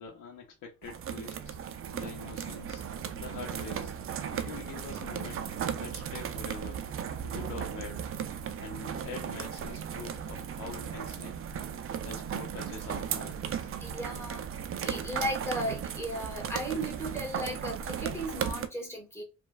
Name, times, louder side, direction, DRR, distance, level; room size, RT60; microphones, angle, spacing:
voice 1, 0.0-1.6 1.9-2.8 3.1-3.9 4.3-6.8 7.2-8.1 8.6-11.3 12.0-13.7, left 5 dB, 75° left, 0.7 m, -45 dB
sound 1, 0.8-18.7, right 8 dB, 45° right, 0.4 m, -36 dB
voice 2, 13.8-14.5 14.8-19.2, equal, 10° left, 1.4 m, -35 dB
3.0 x 2.2 x 2.3 m
cardioid pair, 90°, 30 cm